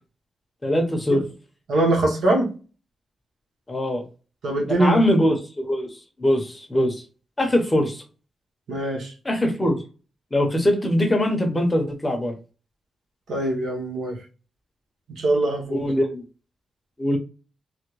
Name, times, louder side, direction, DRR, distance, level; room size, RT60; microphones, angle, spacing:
voice 1, 0.6-1.2 3.7-4.0 4.7-5.9 6.2-7.0 7.4-8.0 9.2-9.8 10.3-12.3 15.7-16.2 17.0-17.2, left 1 dB, 20° left, 4 dB, 0.8 m, -22 dB
voice 2, 1.7-2.5 4.4-5.0 8.7-9.1 13.3-14.2 15.1-15.8, right 2 dB, 85° right, -1 dB, 1.1 m, -22 dB
3.4 x 2.2 x 3.0 m, 0.34 s
wide cardioid pair, 125°, 0 cm